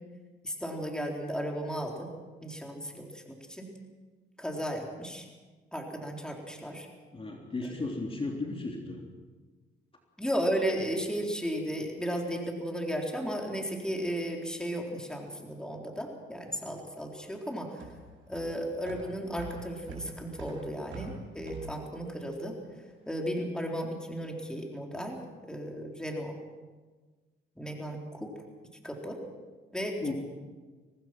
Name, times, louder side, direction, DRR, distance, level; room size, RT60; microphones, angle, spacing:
voice 1, 0.4-2.1 2.4-3.2 3.5-3.7 4.4-5.3 5.7-6.9 10.2-17.7 18.3-22.5 23.1-25.2 25.4-26.3 27.6-28.3 28.8-29.2 29.7-30.1, equal, 5° left, 1 dB, 4.0 m, -34 dB
voice 2, 7.1-9.0 30.0-30.1, left 3 dB, 30° left, 1 dB, 3.3 m, -35 dB
sound 1, 16.4-23.0, right 4 dB, 75° right, 7.4 m, -46 dB
24.5 x 18.5 x 6.2 m, 1.3 s
cardioid pair, 90°, 20 cm